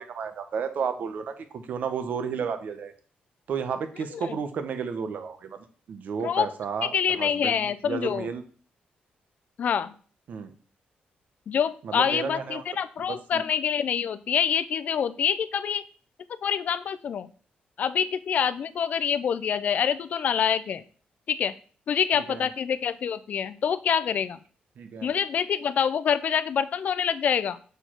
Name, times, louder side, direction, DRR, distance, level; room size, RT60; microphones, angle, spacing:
voice 1, 0.0-2.9 3.5-8.4 10.3-10.5 11.8-12.6 13.1-13.4 22.1-22.5 24.8-25.1, right 6 dB, 65° right, 9 dB, 0.9 m, -32 dB
voice 2, 6.8-8.3 9.6-9.9 11.5-15.8 16.4-17.3 17.8-20.8 21.3-21.5 21.9-24.4 25.0-27.6, left 7 dB, 60° left, 13 dB, 0.5 m, -26 dB
6.7 x 4.6 x 4.4 m, 0.41 s
cardioid pair, 135°, 3 cm